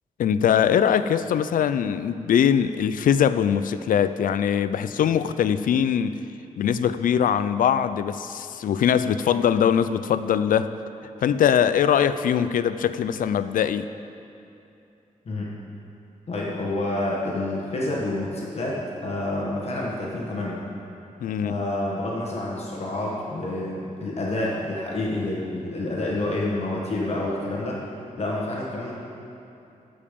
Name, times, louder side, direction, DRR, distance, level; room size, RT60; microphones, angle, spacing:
voice 1, 0.2-6.2 6.6-10.7 11.2-13.9 21.2-21.6, left 8 dB, 80° left, 13 dB, 0.4 m, -22 dB
voice 2, 16.3-20.6 21.4-27.8 28.2-28.9, left 1 dB, 50° left, -4 dB, 1.4 m, -28 dB
13.5 x 5.3 x 5.1 m, 2.8 s
wide cardioid pair, 165°, 14 cm